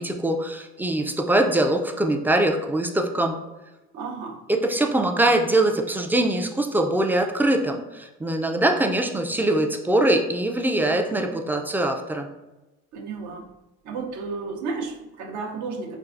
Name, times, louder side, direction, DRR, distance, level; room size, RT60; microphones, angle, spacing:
voice 1, 0.0-3.4 4.5-12.3, right 1 dB, 5° right, 4 dB, 0.3 m, -22 dB
voice 2, 3.9-4.4 12.9-13.5 13.8-16.0, right 4 dB, 65° right, 3 dB, 0.7 m, -32 dB
4.6 x 2.4 x 2.5 m, 1.0 s
supercardioid pair, 85°, 32 cm